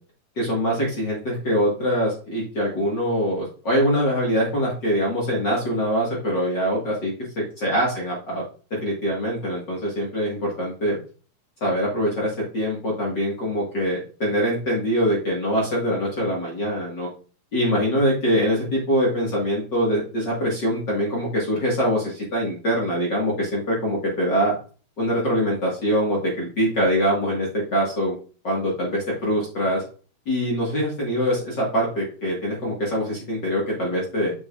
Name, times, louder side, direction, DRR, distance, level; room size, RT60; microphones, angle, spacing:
voice 1, 0.3-7.1 7.6-8.4 8.7-11.0 11.6-17.1 17.5-24.5 25.0-28.1 28.4-29.8 30.2-34.3, equal, 45° left, -3 dB, 1.5 m, -23 dB
6.9 x 6.8 x 2.4 m, 0.38 s
omnidirectional pair, 4.2 m